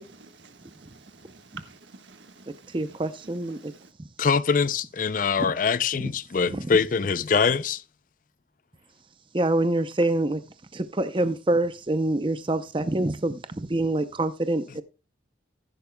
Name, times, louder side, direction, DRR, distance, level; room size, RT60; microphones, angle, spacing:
voice 1, 0.0-3.9, right 4 dB, 75° right, 1.4 m, -50 dB
voice 2, 2.7-3.7 5.4-5.5 6.5-6.7 9.3-10.4 10.7-14.8, right 2 dB, 25° right, 0.6 m, -26 dB
voice 3, 4.2-7.8, left 5 dB, 45° left, 0.4 m, -23 dB
14.5 x 10.5 x 2.2 m
head